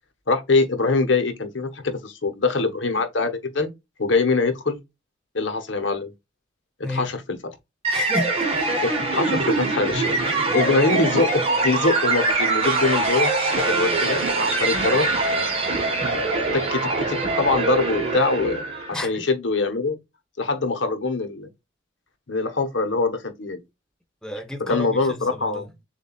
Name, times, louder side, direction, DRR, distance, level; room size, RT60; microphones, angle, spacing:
voice 1, 0.3-3.7 4.0-4.8 5.3-6.1 6.8-7.4 8.8-15.1 16.5-18.6 18.9-20.0 20.4-21.5 22.3-23.6 24.6-25.7, left 3 dB, 70° left, 1.0 m, -23 dB
sound 1, 7.8-19.0, right 3 dB, 30° right, 1.4 m, -23 dB
voice 2, 7.9-8.7 10.4-10.5 16.0-16.2 18.9-19.2 24.2-25.6, left 1 dB, 5° left, 0.8 m, -32 dB
7.0 x 2.6 x 2.4 m
head